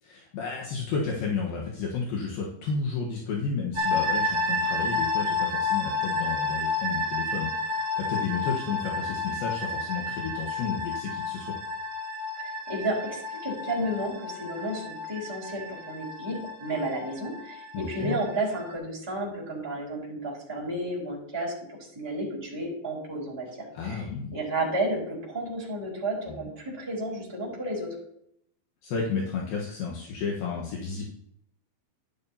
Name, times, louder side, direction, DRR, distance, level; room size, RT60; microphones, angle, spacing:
voice 1, 0.0-11.6 17.7-18.2 23.7-24.4 26.3-26.5 28.8-31.0, left 5 dB, 75° left, -2 dB, 3.0 m, -32 dB
sound 1, 3.8-18.7, left 3 dB, 65° right, 3.2 m, -31 dB
voice 2, 12.4-24.1 24.3-28.0, right 1 dB, 5° right, -4 dB, 3.5 m, -32 dB
11.5 x 11.0 x 2.8 m, 0.72 s
omnidirectional pair, 4.3 m